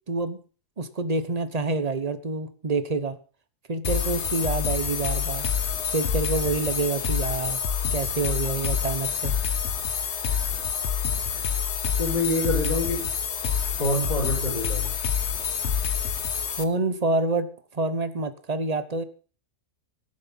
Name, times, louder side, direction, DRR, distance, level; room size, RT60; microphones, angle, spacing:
voice 1, 0.1-0.4 0.8-3.2 3.7-5.5 5.9-7.6 7.9-9.4 16.6-19.0, right 3 dB, 30° right, 12 dB, 0.9 m, -27 dB
sound 1, 3.8-16.6, left 7 dB, 50° left, 1.1 m, -27 dB
voice 2, 12.0-13.0 13.8-14.9, left 1 dB, 90° left, -3 dB, 6.0 m, -26 dB
18.0 x 7.7 x 5.6 m, 0.40 s
omnidirectional pair, 1.7 m